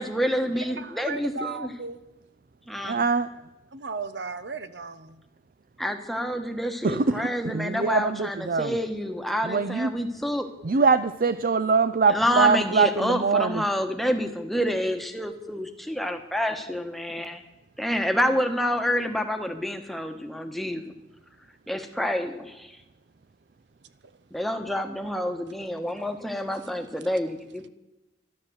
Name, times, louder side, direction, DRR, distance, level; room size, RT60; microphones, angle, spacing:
voice 1, 0.0-1.7 2.7-3.0 5.8-10.5 12.1-17.4 17.8-20.8 21.7-22.7 24.3-27.7, equal, ahead, 1.2 m, -28 dB
voice 2, 0.6-2.0 3.7-5.2, right 4 dB, 70° right, 1.0 m, -35 dB
voice 3, 2.8-3.3 6.8-8.8 9.4-9.9 10.6-13.6, right 4 dB, 50° right, 0.4 m, -23 dB
12.5 x 12.0 x 7.9 m
head